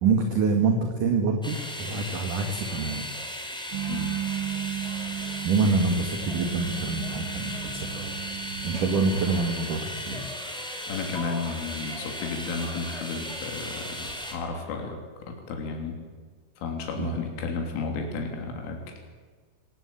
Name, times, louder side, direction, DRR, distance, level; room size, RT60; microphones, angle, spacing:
voice 1, 0.0-3.1 5.4-8.1 8.6-10.3 17.0-17.2, right 4 dB, 50° right, 4 dB, 2.8 m, -26 dB
sound 1, 1.4-14.3, equal, ahead, 3.1 m, -36 dB
sound 2, 3.7-9.5, right 11 dB, 75° right, 3.4 m, -35 dB
voice 2, 10.9-16.0 16.6-19.0, left 4 dB, 75° left, 2 dB, 5.5 m, -33 dB
26.0 x 18.0 x 8.6 m, 1.5 s
omnidirectional pair, 5.7 m